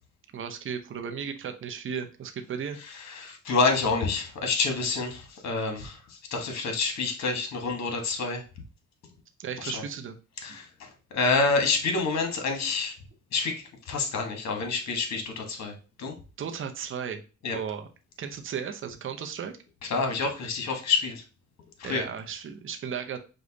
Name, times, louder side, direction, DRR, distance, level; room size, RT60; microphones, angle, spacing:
voice 1, 0.3-2.8 9.4-10.2 10.5-10.6 16.4-17.2 17.5-17.9 18.2-19.6 21.8-23.2, right 7 dB, 45° right, 6 dB, 0.7 m, -35 dB
voice 2, 2.8-8.4 9.6-9.8 10.4-13.0 13.3-16.1 17.4-17.6 19.9-21.2 21.8-22.0, left 4 dB, 60° left, 4 dB, 1.4 m, -28 dB
5.1 x 2.3 x 3.9 m, 0.33 s
cardioid pair, 90°, 30 cm